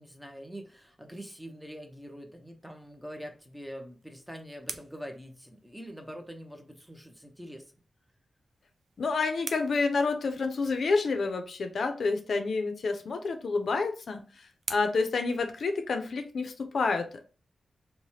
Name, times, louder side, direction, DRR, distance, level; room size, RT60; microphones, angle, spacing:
voice 1, 0.0-7.7, equal, ahead, 4 dB, 0.6 m, -44 dB
sound 1, 3.8-6.2 8.4-10.8 13.0-16.2, right 4 dB, 65° right, 0.4 m, -47 dB
voice 2, 9.0-17.2, left 4 dB, 70° left, 7 dB, 0.4 m, -29 dB
3.2 x 2.1 x 2.7 m, 0.36 s
wide cardioid pair, 105°, 0 cm